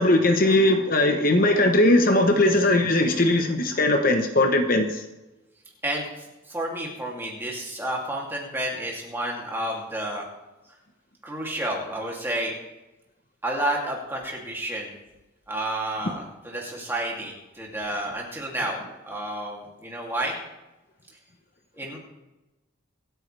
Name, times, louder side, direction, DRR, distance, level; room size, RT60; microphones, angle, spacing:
voice 1, 0.0-5.0, left 1 dB, 45° left, 5 dB, 1.0 m, -20 dB
voice 2, 5.8-10.2 11.2-12.6 13.4-14.9 15.5-20.3 21.8-22.0, right 1 dB, 10° right, -2 dB, 2.7 m, -30 dB
24.5 x 9.3 x 3.4 m, 1.0 s
head